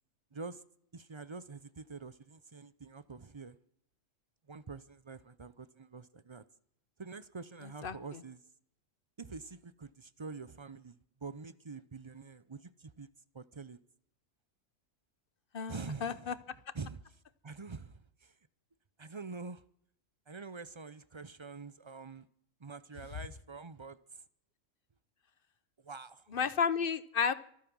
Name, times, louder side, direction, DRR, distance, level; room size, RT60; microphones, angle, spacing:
voice 1, 0.3-0.6 0.9-3.6 4.5-6.4 7.0-8.4 9.2-13.1 13.3-13.8 15.7-16.3 16.7-17.0 17.4-18.3 19.0-19.6 20.3-22.3 22.6-24.2 25.8-26.3, right 4 dB, 30° right, 0.5 m, -46 dB
voice 2, 7.8-8.2 15.5-16.3 26.3-27.3, left 6 dB, 50° left, 0.9 m, -32 dB
25.5 x 9.0 x 6.2 m
omnidirectional pair, 1.4 m